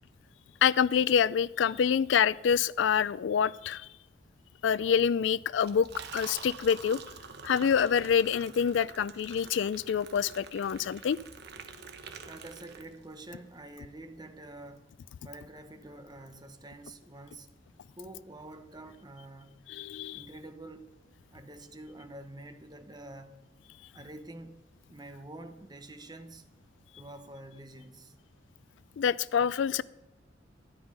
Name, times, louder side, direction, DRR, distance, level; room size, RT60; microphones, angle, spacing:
voice 1, 0.6-3.9 4.6-5.9 6.1-7.0 7.4-11.2 19.7-20.2 29.0-29.8, left 7 dB, 70° left, 0.3 m, -26 dB
Liquid, 5.5-13.2, right 5 dB, 60° right, 1.2 m, -46 dB
voice 2, 12.3-14.9 15.2-17.5 18.0-19.7 20.1-20.9 21.3-23.4 23.9-24.6 24.9-26.4 27.0-28.1, right 1 dB, 20° right, 1.1 m, -47 dB
13.0 x 10.5 x 5.4 m
head